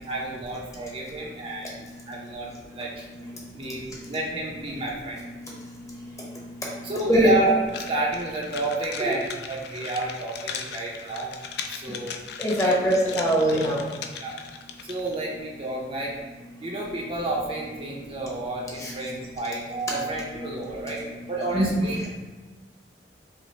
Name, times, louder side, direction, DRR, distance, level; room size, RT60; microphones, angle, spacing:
voice 1, 0.1-1.7 2.1-3.0 3.6-3.8 4.1-5.2 6.8-7.5 7.9-11.3 11.7-12.2 12.6-12.7 14.1-14.4 14.8-16.1 16.6-22.1, right 2 dB, 30° right, -3 dB, 0.5 m, -30 dB
sound 1, 7.7-15.2, left 6 dB, 65° left, 0.3 m, -38 dB
voice 2, 12.4-13.9 18.8-18.9 21.5-21.9, equal, 15° left, -3 dB, 0.8 m, -22 dB
5.1 x 2.0 x 3.2 m, 1.3 s
head